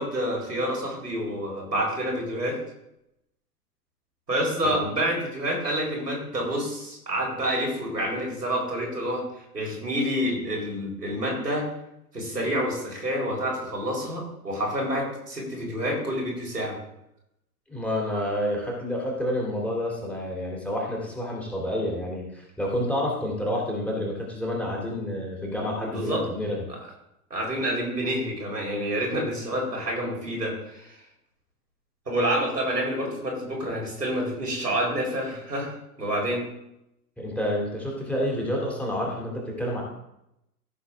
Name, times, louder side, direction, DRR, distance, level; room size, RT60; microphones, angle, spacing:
voice 1, 0.0-2.6 4.3-9.2 9.5-11.7 12.1-16.8 25.8-26.2 26.7-26.8 27.3-31.0 32.1-36.5, equal, 80° right, -1 dB, 3.9 m, -28 dB
voice 2, 17.7-26.6 37.2-39.8, left 1 dB, 5° left, -2 dB, 2.8 m, -29 dB
14.5 x 6.5 x 3.7 m, 0.82 s
figure-of-eight pair, 100°, 47 cm